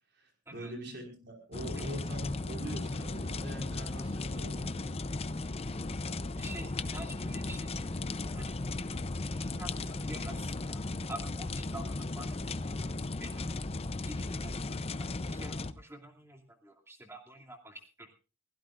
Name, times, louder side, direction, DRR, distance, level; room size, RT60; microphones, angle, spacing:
voice 1, 0.1-4.9, equal, 60° right, 2 dB, 5.1 m, -43 dB
sound 1, 1.5-15.7, left 2 dB, 30° left, 0.6 m, -36 dB
voice 2, 6.4-7.9 8.3-8.6 9.4-10.8 11.1-12.4 13.2-13.5 14.1-14.7 15.0-18.1, right 1 dB, 15° right, 1 dB, 2.7 m, -47 dB
23.0 x 16.0 x 2.5 m, 0.34 s
head